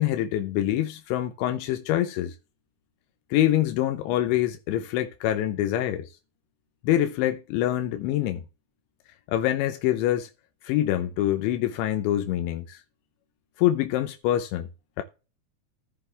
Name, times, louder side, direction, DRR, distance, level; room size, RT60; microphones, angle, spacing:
voice 1, 0.0-2.4 3.3-6.1 6.8-8.4 9.3-10.3 10.6-12.8 13.6-14.7 15.0-15.1, left 13 dB, 85° left, 3.1 m, -25 dB
16.0 x 5.5 x 3.3 m
omnidirectional pair, 5.3 m